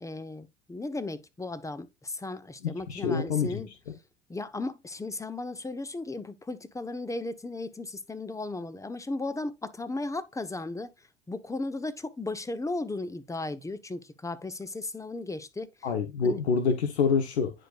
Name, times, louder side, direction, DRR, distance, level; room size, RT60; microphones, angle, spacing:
voice 1, 0.0-3.7 4.3-15.9 16.2-16.4, left 2 dB, 10° left, 1.0 m, -36 dB
voice 2, 2.9-3.6 15.8-17.5, left 5 dB, 85° left, 1.1 m, -26 dB
9.9 x 5.2 x 2.4 m
hypercardioid pair, 80°, 32 cm